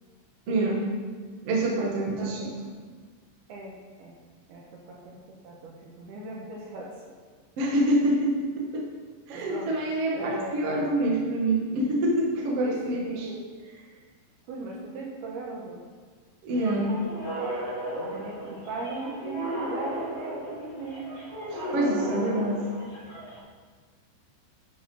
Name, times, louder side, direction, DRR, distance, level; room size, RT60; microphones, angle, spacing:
voice 1, 0.5-0.9 1.4-2.5 7.6-8.9 9.3-13.0 16.4-16.9 21.5-22.6, right 1 dB, 50° right, -1 dB, 1.9 m, -26 dB
voice 2, 1.9-2.4 3.5-3.7 4.0-4.1 4.5-6.9 9.3-9.7 10.1-10.6 12.6-13.4 14.5-15.8 17.9-21.0, right 3 dB, 70° right, -2 dB, 2.7 m, -39 dB
sound 1, 16.5-23.4, right 1 dB, 30° left, 4.2 m, -35 dB
10.5 x 9.4 x 5.6 m, 1.5 s
omnidirectional pair, 5.5 m